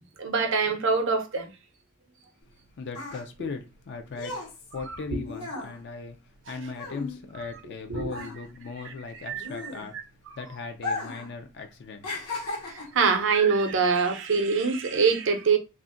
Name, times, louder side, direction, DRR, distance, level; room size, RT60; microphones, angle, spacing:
voice 1, 0.2-1.5 3.4-3.5 7.9-8.1 8.8-10.0 12.7-15.6, right 5 dB, 55° right, 0.6 m, -25 dB
sound 1, 2.4-7.8 8.0-10.2 10.7-11.3 11.6-13.1 13.8-14.0, left 3 dB, 80° left, 1.1 m, -36 dB
voice 2, 2.8-4.4 4.7-6.2 6.5-10.0 10.3-12.1, left 4 dB, 50° left, 0.4 m, -38 dB
2.4 x 2.1 x 3.7 m
head